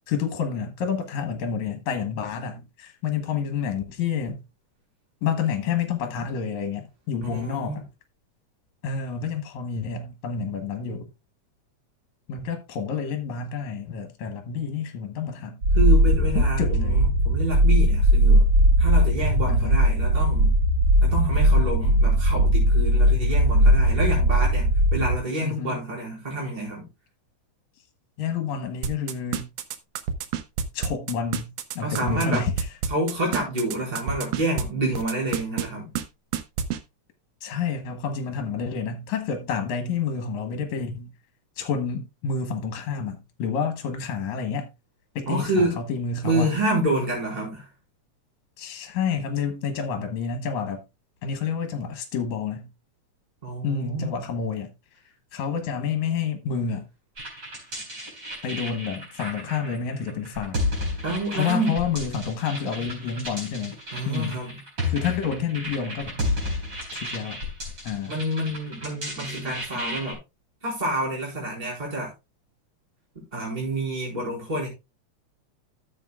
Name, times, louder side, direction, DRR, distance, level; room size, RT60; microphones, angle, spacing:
voice 1, 0.1-4.4 5.2-7.8 8.8-11.1 12.3-15.6 16.4-17.1 19.5-19.8 25.4-25.8 28.2-29.5 30.7-32.7 37.4-41.1 41.6-44.7 45.2-46.6 48.6-50.8 51.2-52.7 53.6-54.7 55.3-56.9 58.4-61.0 61.3-63.8 64.1-64.5 64.9-66.3 66.9-67.4 67.8-68.2, left 6 dB, 70° left, 2.4 m, -29 dB
voice 2, 7.2-7.8 15.7-18.5 18.8-20.5 21.0-26.9 31.8-32.5 32.9-35.9 45.3-45.8 46.2-47.7 53.4-54.2 61.0-61.7 63.9-64.6 68.1-70.2 70.6-72.1 73.3-74.7, right 1 dB, 15° right, 4.6 m, -28 dB
sound 1, 15.6-25.2, equal, 55° right, 1.1 m, -19 dB
sound 2, 28.8-34.6 34.9-35.7 36.0-36.1 36.3-36.8, right 8 dB, 70° right, 1.7 m, -27 dB
sound 3, 57.2-70.1, left 1 dB, 35° right, 4.8 m, -33 dB
14.0 x 7.8 x 2.3 m
omnidirectional pair, 3.5 m